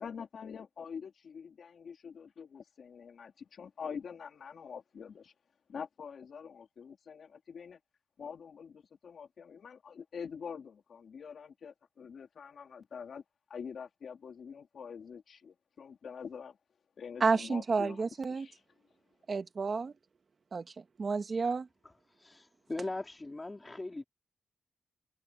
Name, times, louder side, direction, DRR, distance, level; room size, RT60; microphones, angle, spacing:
voice 1, 0.0-5.3 5.7-7.8 8.2-13.2 13.5-16.6 17.0-18.6, left 6 dB, 55° left, 2.7 m, -45 dB
voice 2, 17.2-18.5 19.3-19.9 20.5-21.7, right 4 dB, 35° right, 1.9 m, -31 dB
voice 3, 21.8-24.0, left 2 dB, 15° left, 4.5 m, -40 dB
wide cardioid pair, 160°, 0 cm